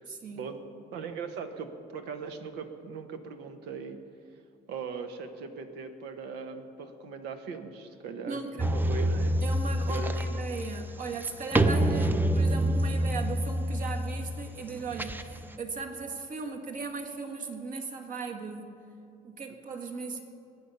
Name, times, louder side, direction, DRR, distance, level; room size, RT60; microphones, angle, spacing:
voice 1, 0.1-0.5 8.2-8.7 9.4-18.7 19.2-20.2, right 4 dB, 55° right, 4 dB, 1.7 m, -37 dB
voice 2, 0.9-4.0 4.7-9.4 9.9-10.3, right 5 dB, 85° right, 7 dB, 1.2 m, -39 dB
sound 1, 8.6-15.6, right 1 dB, 10° right, 0.6 m, -27 dB
20.5 x 8.5 x 5.6 m, 2.7 s
cardioid pair, 110°, 17 cm